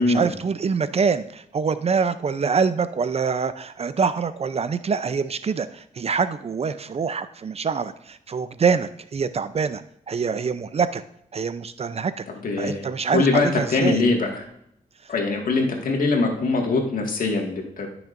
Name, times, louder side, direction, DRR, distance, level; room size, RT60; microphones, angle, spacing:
voice 1, 0.0-9.8 10.1-11.0 11.3-12.2 12.6-14.0, right 5 dB, 40° right, 13 dB, 0.5 m, -25 dB
voice 2, 12.4-14.5 15.1-17.9, left 3 dB, 65° left, 1 dB, 1.9 m, -22 dB
13.0 x 6.2 x 2.6 m, 0.74 s
cardioid pair, 70°, 15 cm